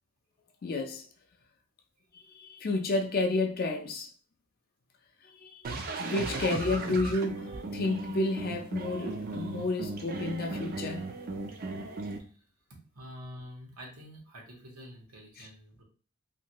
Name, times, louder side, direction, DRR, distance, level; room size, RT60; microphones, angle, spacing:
voice 1, 0.6-1.1 2.1-4.1 5.4-5.6 6.0-11.1 15.4-15.5, left 2 dB, 40° left, 0.4 m, -31 dB
sound 1, 5.6-12.2, right 3 dB, 40° right, 0.3 m, -36 dB
voice 2, 12.9-15.8, equal, 85° right, 1.0 m, -47 dB
2.6 x 2.5 x 2.9 m
head